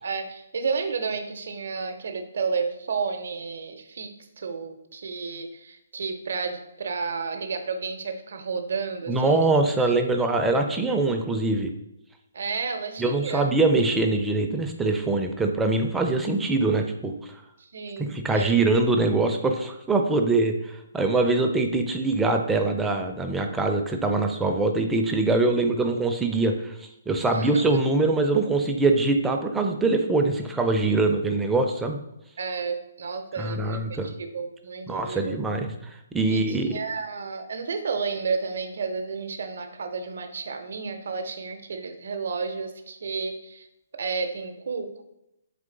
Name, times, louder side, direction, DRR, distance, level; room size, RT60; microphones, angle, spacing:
voice 1, 0.0-4.1 4.4-9.5 9.9-10.6 12.3-13.5 17.6-18.6 27.3-27.8 32.4-35.3 36.3-43.7 43.9-45.0, right 5 dB, 65° right, 7 dB, 0.6 m, -32 dB
voice 2, 9.1-11.7 13.0-17.3 18.0-32.0 33.4-34.1 34.9-35.7 36.1-36.7, right 3 dB, 10° right, 4 dB, 0.4 m, -23 dB
3.8 x 3.1 x 3.8 m, 0.87 s
hypercardioid pair, 145°, 0 cm